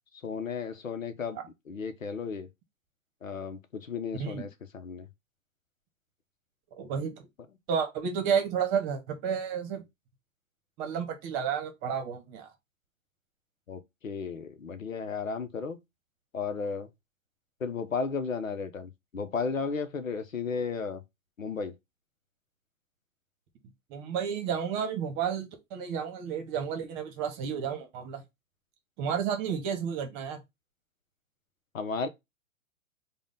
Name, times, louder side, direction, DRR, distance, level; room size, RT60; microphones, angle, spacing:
voice 1, 0.2-1.4 1.7-2.5 3.2-5.1 13.7-15.8 16.3-16.9 17.6-21.0 21.4-21.7 31.7-32.1, left 5 dB, 75° left, 0.8 m, -34 dB
voice 2, 4.1-4.5 6.8-7.1 7.7-9.8 10.8-12.5 23.9-28.2 29.0-30.4, right 7 dB, 30° right, 1.1 m, -31 dB
5.1 x 2.4 x 3.7 m
figure-of-eight pair, 105°, 40 cm